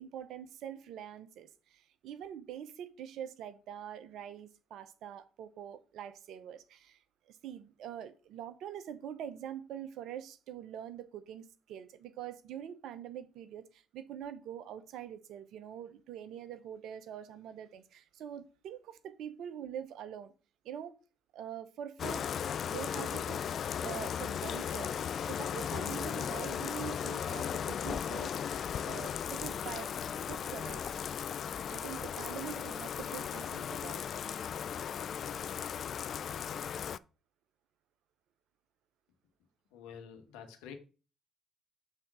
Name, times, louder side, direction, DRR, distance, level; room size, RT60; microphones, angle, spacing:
voice 1, 0.0-7.0 7.3-20.3 20.6-21.0 21.3-22.2 22.6-23.4 23.8-28.4 28.8-30.0 30.3-31.2 31.7-34.0, right 9 dB, 70° right, 0.7 m, -44 dB
Bathtub (filling or washing), 22.0-37.0, left 8 dB, 55° left, 0.3 m, -36 dB
voice 2, 39.7-40.7, left 7 dB, 80° left, 1.2 m, -48 dB
6.6 x 3.7 x 6.1 m
hypercardioid pair, 50°, 0 cm